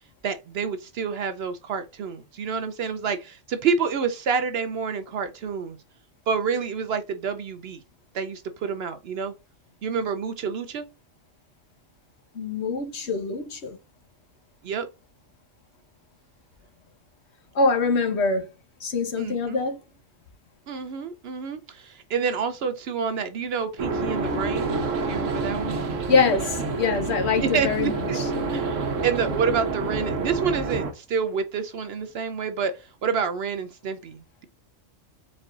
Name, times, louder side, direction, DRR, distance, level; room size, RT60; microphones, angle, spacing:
voice 1, 0.2-5.8 6.3-7.8 8.1-9.3 9.8-10.8 14.6-14.9 19.2-19.6 20.7-24.7 25.1-25.8 27.4-28.2 28.5-34.5, right 6 dB, 65° right, 0.7 m, -28 dB
voice 2, 12.3-13.8 17.5-18.5 18.8-19.8 26.1-28.3, left 4 dB, 60° left, 1.2 m, -24 dB
sound 1, 23.8-30.9, right 3 dB, 80° right, 1.2 m, -28 dB
4.2 x 4.2 x 2.4 m
omnidirectional pair, 1.3 m